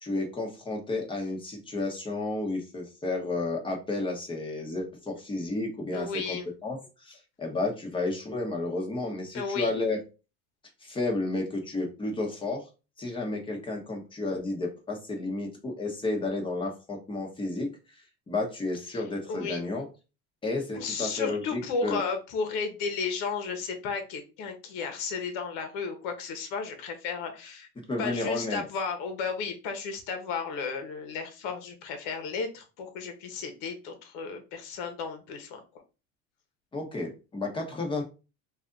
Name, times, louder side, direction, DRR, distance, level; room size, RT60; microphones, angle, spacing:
voice 1, 0.0-6.4 6.6-10.0 10.8-12.6 13.0-17.7 18.3-19.9 20.4-22.0 27.9-28.6 36.7-38.0, left 2 dB, 15° left, 1 dB, 1.1 m, -32 dB
voice 2, 5.9-6.5 9.3-9.7 18.9-19.0 19.3-19.7 20.7-27.7 28.0-35.6, left 5 dB, 70° left, 6 dB, 1.2 m, -33 dB
3.3 x 2.6 x 3.8 m, 0.31 s
supercardioid pair, 135°, 32 cm